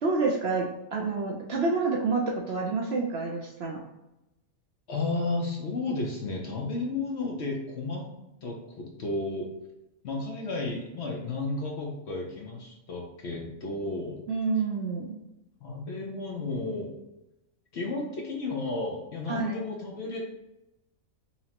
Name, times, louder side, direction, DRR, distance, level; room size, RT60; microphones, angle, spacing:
voice 1, 0.0-3.8 14.3-15.2 19.3-19.6, right 4 dB, 60° right, -1 dB, 0.7 m, -28 dB
voice 2, 4.9-8.1 8.4-9.5 10.0-14.2 15.6-16.9 17.7-20.2, left 3 dB, 60° left, 0 dB, 0.8 m, -33 dB
5.6 x 2.1 x 2.8 m, 0.92 s
omnidirectional pair, 1.5 m